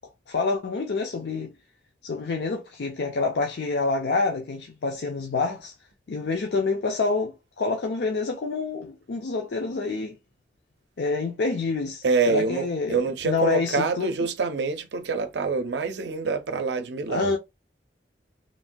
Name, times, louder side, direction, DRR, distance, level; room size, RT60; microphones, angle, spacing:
voice 1, 0.3-1.5 2.0-5.7 6.1-10.2 11.0-14.1 17.1-17.4, left 3 dB, 75° left, 0.5 m, -27 dB
voice 2, 12.0-17.4, right 4 dB, 80° right, 0.5 m, -26 dB
3.1 x 2.2 x 2.5 m
head